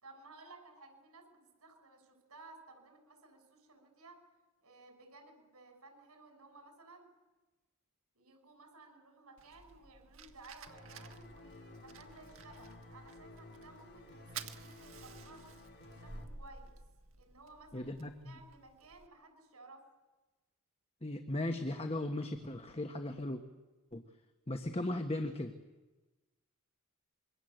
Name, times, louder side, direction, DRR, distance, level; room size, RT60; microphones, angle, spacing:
voice 1, 0.0-4.2 4.6-7.1 8.1-16.7 17.1-19.9, right 3 dB, 85° right, 5 dB, 6.8 m, -57 dB
Fire, 9.4-19.1, right 6 dB, 65° right, 1.7 m, -53 dB
sound 1, 10.7-16.2, left 1 dB, 50° left, 2.8 m, -54 dB
voice 2, 17.7-18.3 21.0-23.4 23.9-24.0 24.5-25.5, left 1 dB, 25° left, 6 dB, 1.4 m, -37 dB
26.5 x 23.0 x 8.0 m, 1.1 s
head